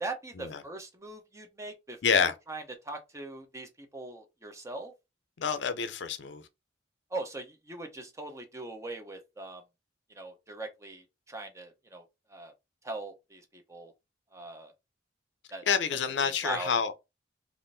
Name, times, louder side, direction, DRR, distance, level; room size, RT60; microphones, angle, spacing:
voice 1, 0.0-4.9 7.1-9.6 10.1-12.0 12.3-12.5 12.8-13.9 14.3-14.7 15.5-15.6 16.2-16.7, right 2 dB, 15° right, 0.6 m, -41 dB
voice 2, 2.0-2.3 5.4-6.5 15.7-16.9, left 6 dB, 70° left, 0.5 m, -28 dB
3.5 x 2.5 x 2.6 m
head